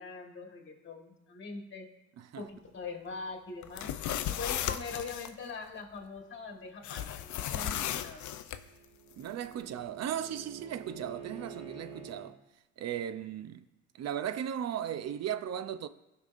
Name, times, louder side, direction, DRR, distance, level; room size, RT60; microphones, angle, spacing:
voice 1, 0.0-1.9 2.4-3.9 4.3-8.2, left 4 dB, 40° left, 1.4 m, -42 dB
sound 1, 3.6-5.3 6.8-8.6, left 11 dB, 75° left, 0.5 m, -35 dB
Bowed string instrument, 8.3-12.3, right 6 dB, 20° right, 1.8 m, -48 dB
voice 2, 9.2-12.4 12.8-13.6 13.9-15.9, right 9 dB, 60° right, 0.6 m, -36 dB
16.5 x 5.5 x 2.5 m
cardioid pair, 90°, 30 cm